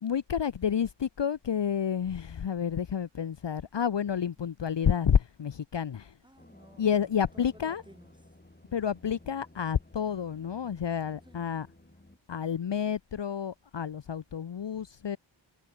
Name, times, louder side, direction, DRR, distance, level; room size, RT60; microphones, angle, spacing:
voice 1, 0.0-6.1 6.8-7.8 8.7-11.7 12.3-15.2, left 8 dB, 60° left, 0.8 m, -30 dB
voice 2, 6.2-8.4 11.2-11.7, right 1 dB, 10° right, 6.4 m, -56 dB
sound 1, 6.4-12.2, left 1 dB, 20° left, 6.6 m, -56 dB
wide cardioid pair, 70°, 48 cm